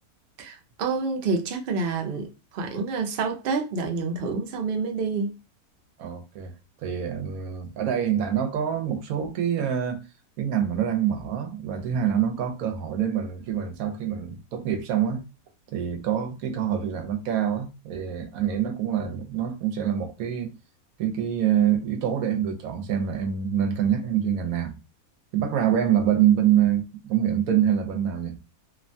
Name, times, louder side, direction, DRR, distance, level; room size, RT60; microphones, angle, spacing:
voice 1, 0.4-5.3, right 4 dB, 60° right, 0.6 m, -28 dB
voice 2, 6.0-6.5 6.8-10.0 10.4-15.2 15.7-20.5 21.0-24.8 25.3-28.4, right 9 dB, 80° right, 1.0 m, -25 dB
3.0 x 2.1 x 2.6 m
omnidirectional pair, 1.5 m